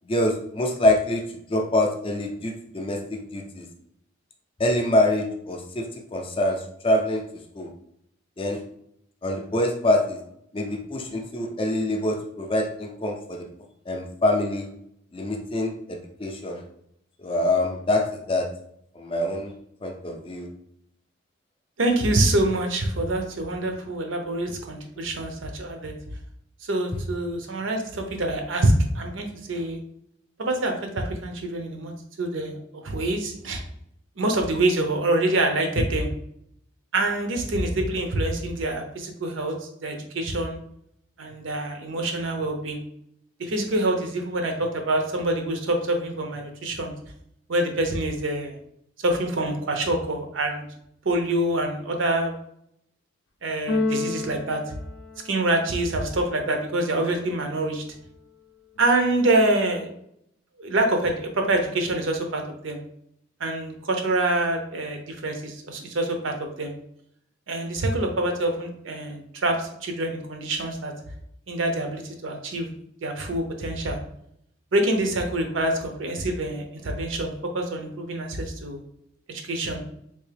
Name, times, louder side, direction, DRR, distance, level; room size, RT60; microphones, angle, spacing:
voice 1, 0.1-1.2 1.5-3.7 4.6-5.9 6.1-7.2 7.6-7.7 8.4-8.6 9.2-10.2 10.5-13.4 13.9-14.7 15.1-16.6 17.2-18.5 18.9-19.5 19.8-20.5, left 1 dB, 25° left, 2 dB, 0.4 m, -25 dB
voice 2, 21.8-25.9 26.6-29.8 30.4-33.6 34.2-36.1 36.9-40.6 41.2-42.8 43.4-46.9 47.5-48.6 49.0-50.6 51.0-52.4 53.4-54.6 55.2-57.8 58.8-59.9 60.6-62.8 63.4-66.7 67.5-70.9 71.5-72.7 73.0-74.0 74.7-78.8 79.3-79.8, right 1 dB, 70° right, 4 dB, 0.6 m, -26 dB
Keyboard (musical), 53.7-55.8, left 2 dB, 85° left, 0.5 m, -29 dB
3.4 x 2.8 x 3.3 m, 0.73 s
head